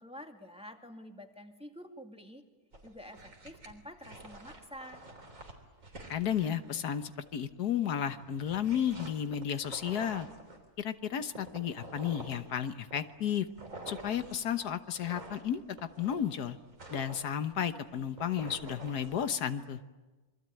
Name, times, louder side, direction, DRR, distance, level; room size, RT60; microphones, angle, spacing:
voice 1, 0.0-2.4 2.8-5.0, equal, 5° right, 4 dB, 2.1 m, -48 dB
sound 1, 2.7-7.6 8.0-10.7 11.2-19.4, right 2 dB, 55° right, 3.9 m, -48 dB
voice 2, 6.1-10.3 10.8-13.5 13.9-16.6 16.9-19.8, left 9 dB, 85° left, 10 dB, 1.6 m, -33 dB
27.5 x 23.5 x 9.1 m, 1.2 s
omnidirectional pair, 1.6 m